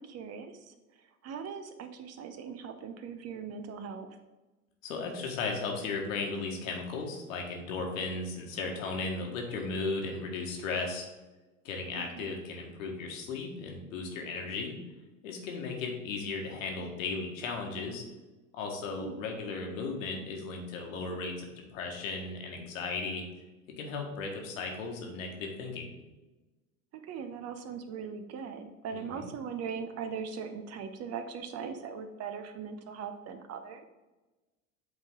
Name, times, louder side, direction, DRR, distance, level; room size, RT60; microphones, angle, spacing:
voice 1, 0.0-4.2 12.0-12.3 19.0-19.2 26.9-33.8, right 6 dB, 35° right, 8 dB, 0.7 m, -40 dB
voice 2, 4.8-11.1 11.6-14.8 15.2-18.0 18.5-23.2 23.8-25.9 28.9-29.3, left 4 dB, 65° left, 1 dB, 1.6 m, -36 dB
7.9 x 3.9 x 3.7 m, 1.2 s
hypercardioid pair, 80°, 43 cm